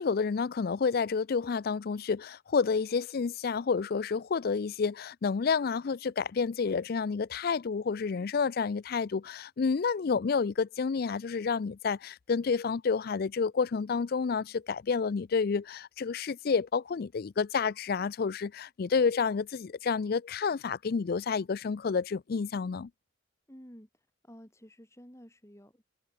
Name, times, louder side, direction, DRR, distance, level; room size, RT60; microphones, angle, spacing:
voice 1, 0.0-22.9, left 5 dB, 50° left, 0.4 m, -29 dB
voice 2, 23.5-25.8, equal, 15° left, 5.7 m, -52 dB
head